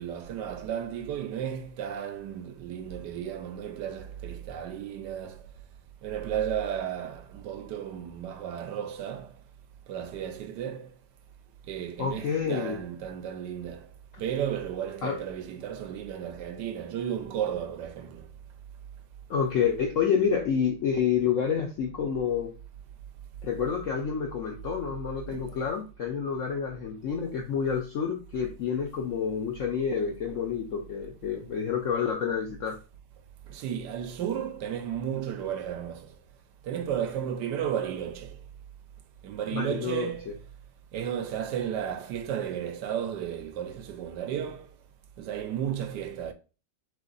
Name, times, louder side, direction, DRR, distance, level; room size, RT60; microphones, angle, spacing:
voice 1, 0.0-5.4 6.0-9.3 9.9-10.9 11.7-13.9 14.2-18.3 25.3-25.4 33.5-36.1 36.6-38.4 39.2-40.3 40.9-44.7 45.2-46.3, right 9 dB, 75° right, 1.2 m, -33 dB
voice 2, 12.0-12.8 15.0-15.2 19.3-22.5 23.4-32.8 39.5-40.3, left 7 dB, 70° left, 0.7 m, -28 dB
3.6 x 3.2 x 3.8 m
omnidirectional pair, 2.0 m